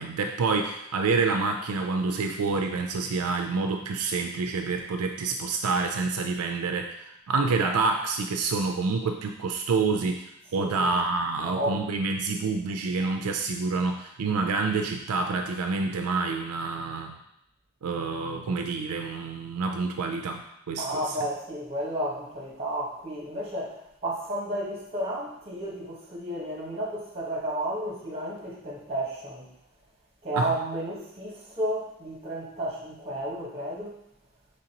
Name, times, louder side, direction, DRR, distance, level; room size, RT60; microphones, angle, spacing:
voice 1, 0.0-17.2 17.8-21.2 30.4-30.5, right 4 dB, 80° right, 4 dB, 0.4 m, -28 dB
voice 2, 10.5-10.9 11.4-11.9 20.8-29.5 30.2-34.0, right 1 dB, 30° right, -4 dB, 1.2 m, -32 dB
5.1 x 3.2 x 2.8 m, 0.81 s
head